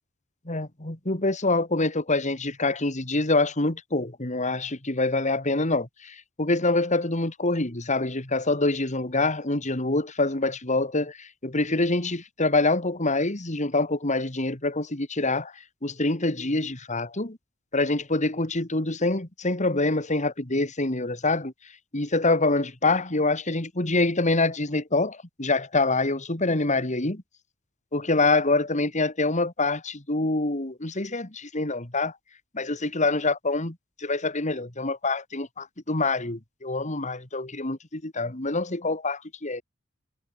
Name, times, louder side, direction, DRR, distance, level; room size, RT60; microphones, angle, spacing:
voice 1, 0.5-17.4 17.7-21.5 21.9-27.2 27.9-32.1 32.5-39.6, left 2 dB, 35° left, 2.7 m, -26 dB
head